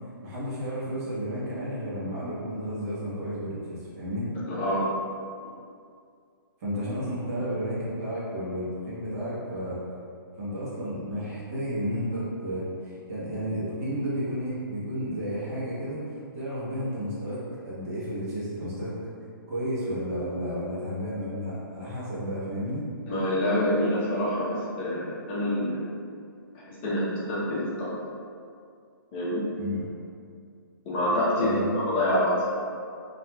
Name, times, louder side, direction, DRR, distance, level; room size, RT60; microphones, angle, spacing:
voice 1, 0.2-4.3 6.6-9.8 10.4-18.9 19.5-22.8 29.5-29.8 31.3-31.8, equal, 40° right, -8 dB, 0.8 m, -32 dB
voice 2, 4.5-4.9 23.1-25.8 26.7-27.9 29.1-29.5 30.8-32.4, left 1 dB, 30° left, -8 dB, 0.7 m, -26 dB
2.8 x 2.4 x 2.2 m, 2.3 s
hypercardioid pair, 145°, 12 cm